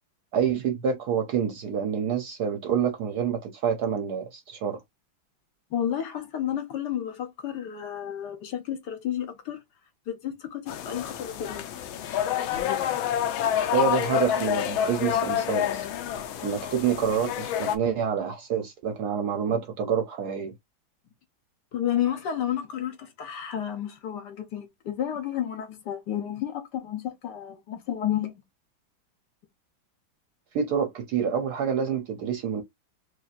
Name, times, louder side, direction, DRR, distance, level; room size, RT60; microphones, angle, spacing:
voice 1, 0.3-4.8 13.7-15.9 16.4-20.5 30.5-32.6, right 7 dB, 70° right, 1.0 m, -27 dB
voice 2, 5.7-9.6 10.1-11.7 21.7-28.3, left 10 dB, 65° left, 1.4 m, -31 dB
sound 1, 10.7-17.8, left 10 dB, 80° left, 1.5 m, -28 dB
4.8 x 2.8 x 2.4 m
omnidirectional pair, 2.2 m